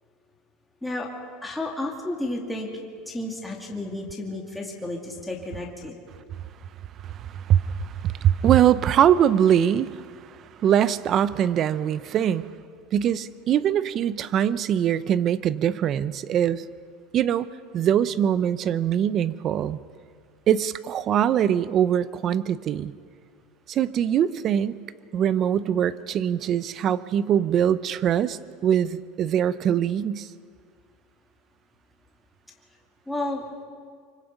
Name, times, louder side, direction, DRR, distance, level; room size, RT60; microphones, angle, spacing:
voice 1, 1.4-2.7 3.1-6.0 33.1-33.4, left 2 dB, 5° left, -2 dB, 2.4 m, -32 dB
voice 2, 7.0-10.0 10.3-12.5 12.9-16.7 17.1-17.5 17.7-19.8 20.5-22.9 23.7-24.7 25.1-30.3, right 9 dB, 35° right, 16 dB, 0.7 m, -22 dB
25.0 x 24.5 x 5.4 m, 2.1 s
supercardioid pair, 140°, 0 cm